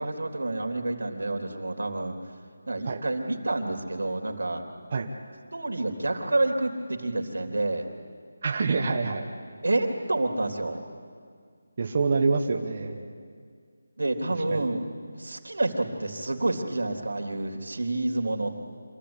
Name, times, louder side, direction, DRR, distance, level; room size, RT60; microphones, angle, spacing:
voice 1, 0.0-2.2 2.7-4.6 5.5-7.9 9.6-10.8 14.0-14.8 15.2-18.6, right 2 dB, 90° right, 3 dB, 3.6 m, -28 dB
voice 2, 8.4-9.3 11.8-13.0 14.5-14.7, right 4 dB, 30° right, 1 dB, 1.3 m, -26 dB
27.0 x 15.5 x 10.0 m, 2.1 s
figure-of-eight pair, 175°, 0 cm